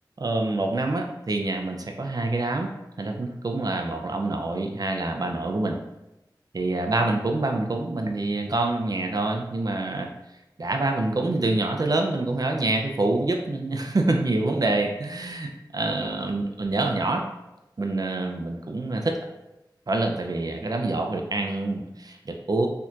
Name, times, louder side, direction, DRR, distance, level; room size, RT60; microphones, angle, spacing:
voice 1, 0.2-2.7 3.0-5.8 6.5-10.1 10.6-17.2 17.8-19.2 19.9-22.7, right 2 dB, 50° right, 3 dB, 0.5 m, -26 dB
4.3 x 2.8 x 2.5 m, 0.93 s
wide cardioid pair, 50°, 8 cm